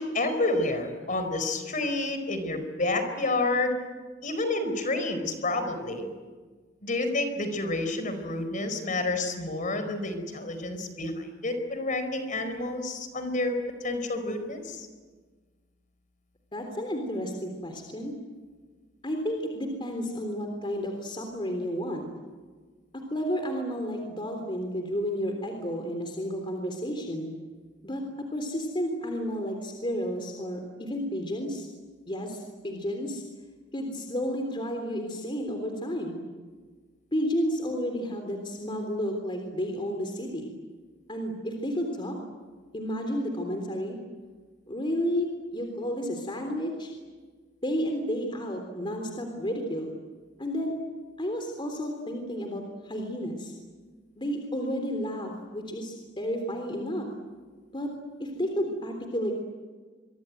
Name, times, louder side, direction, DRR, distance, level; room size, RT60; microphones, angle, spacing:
voice 1, 0.0-3.7 4.2-6.1 6.8-13.5 13.8-14.9, left 2 dB, 45° left, 8 dB, 4.6 m, -29 dB
voice 2, 16.5-18.1 19.0-22.1 22.9-27.3 27.8-28.0 28.3-31.7 32.1-33.2 33.7-36.2 37.1-40.5 41.1-42.1 42.7-44.0 44.7-46.9 47.6-49.9 50.4-50.7 51.2-53.5 54.2-57.1 57.7-57.9 58.2-59.3, equal, 25° left, 4 dB, 3.5 m, -31 dB
26.5 x 24.5 x 9.3 m, 1.4 s
head